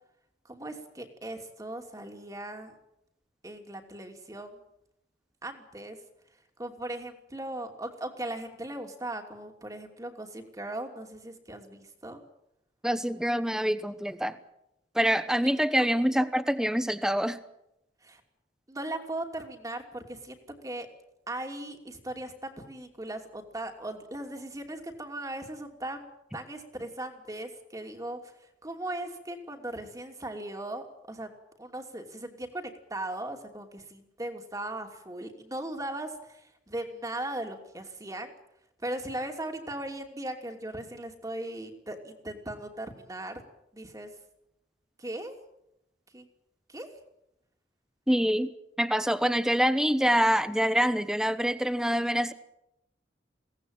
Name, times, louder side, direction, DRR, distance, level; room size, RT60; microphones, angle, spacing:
voice 1, 0.4-2.7 3.4-4.6 5.4-6.0 6.6-12.2 15.8-15.9 18.0-18.2 18.7-20.9 21.3-31.3 31.6-38.3 38.8-43.4 43.7-44.1 45.0-45.4 46.1-46.3 46.7-46.9, right 1 dB, 20° right, 5 dB, 2.9 m, -38 dB
voice 2, 12.8-14.4 14.9-17.4 48.1-52.3, equal, 5° right, 13 dB, 1.1 m, -26 dB
22.5 x 17.5 x 9.0 m, 0.83 s
head